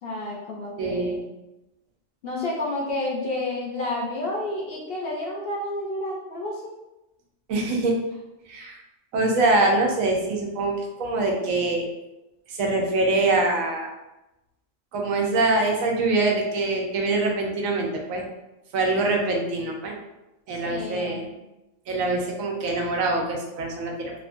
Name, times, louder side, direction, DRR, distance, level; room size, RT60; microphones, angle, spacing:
voice 1, 0.0-1.2 2.2-6.7 20.5-21.3, left 2 dB, 60° left, -4 dB, 0.7 m, -30 dB
voice 2, 0.8-1.2 7.5-7.9 8.5-8.8 9.1-11.9 12.5-13.9 14.9-18.2 18.7-19.9 20.5-21.3 21.9-24.1, right 2 dB, 90° right, 1 dB, 1.0 m, -24 dB
2.9 x 2.3 x 2.5 m, 0.96 s
omnidirectional pair, 1.4 m